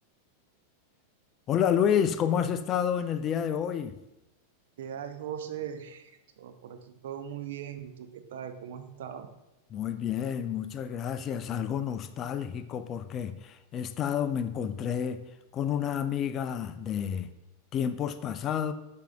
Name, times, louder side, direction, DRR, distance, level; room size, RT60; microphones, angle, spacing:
voice 1, 1.5-4.0 9.7-15.2 15.5-17.3 17.7-18.7, left 8 dB, 30° left, 11 dB, 0.4 m, -29 dB
voice 2, 4.8-6.1 6.4-9.3, right 9 dB, 55° right, 8 dB, 0.6 m, -39 dB
11.5 x 4.6 x 2.3 m, 0.93 s
figure-of-eight pair, 90°, 0 cm